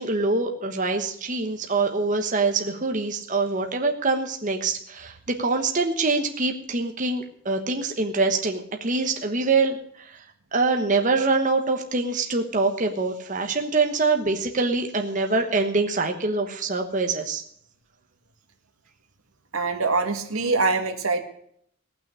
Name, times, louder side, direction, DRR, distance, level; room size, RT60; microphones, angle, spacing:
voice 1, 0.0-10.2 10.5-17.4, right 3 dB, 35° right, 4 dB, 1.2 m, -24 dB
voice 2, 19.5-21.2, right 3 dB, 85° right, 5 dB, 1.8 m, -24 dB
18.0 x 6.2 x 9.7 m, 0.67 s
head